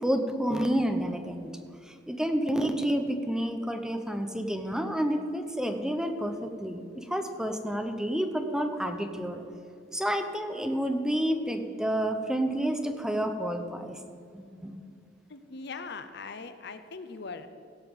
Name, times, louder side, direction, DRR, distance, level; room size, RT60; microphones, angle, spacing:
voice 1, 0.0-9.4 9.9-14.0 14.3-14.8, equal, 5° right, 6 dB, 0.8 m, -30 dB
voice 2, 15.3-17.5, left 4 dB, 60° left, 10 dB, 0.8 m, -40 dB
16.5 x 5.8 x 7.1 m, 2.3 s
head